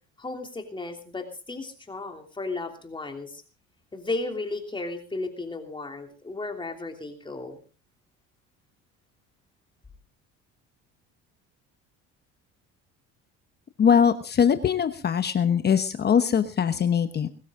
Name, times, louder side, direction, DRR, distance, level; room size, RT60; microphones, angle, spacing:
voice 1, 0.2-3.4 3.9-7.6, left 2 dB, 15° left, 4 dB, 3.1 m, -34 dB
voice 2, 13.8-17.3, left 7 dB, 35° left, 9 dB, 1.1 m, -22 dB
22.0 x 13.0 x 3.8 m, 0.34 s
cardioid pair, 120°, 29 cm